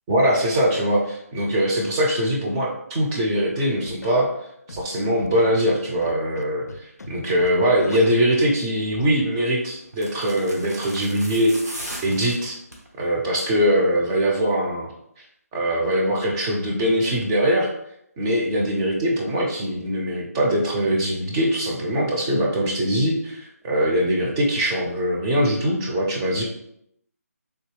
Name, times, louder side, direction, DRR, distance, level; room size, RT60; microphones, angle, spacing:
voice 1, 0.1-4.3 4.7-6.6 7.1-12.6 13.0-14.9 15.5-17.7 18.2-26.4, equal, 15° right, -2 dB, 0.4 m, -22 dB
Scratching (performance technique), 3.6-4.1 4.7-4.9 5.2-5.4 6.0-6.4 6.7-7.1 7.3-7.5 7.8-8.0, left 2 dB, 75° left, 0.4 m, -39 dB
sound 1, 8.9-9.2 9.9-12.9 13.2-13.6 13.9-14.0, right 1 dB, 85° right, 1.0 m, -37 dB
3.3 x 2.6 x 3.1 m, 0.76 s
figure-of-eight pair, 155°, 9 cm